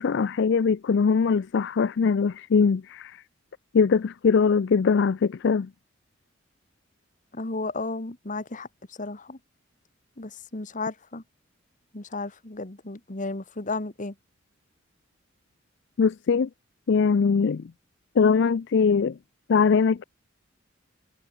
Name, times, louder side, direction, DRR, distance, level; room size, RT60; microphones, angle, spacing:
voice 1, 0.0-3.2 3.7-5.7 16.0-16.5 16.9-17.7 18.2-19.2 19.5-20.0, left 5 dB, 60° left, 0.4 m, -21 dB
voice 2, 7.3-9.4 10.2-11.2 11.9-14.1, left 3 dB, 40° left, 1.6 m, -34 dB
head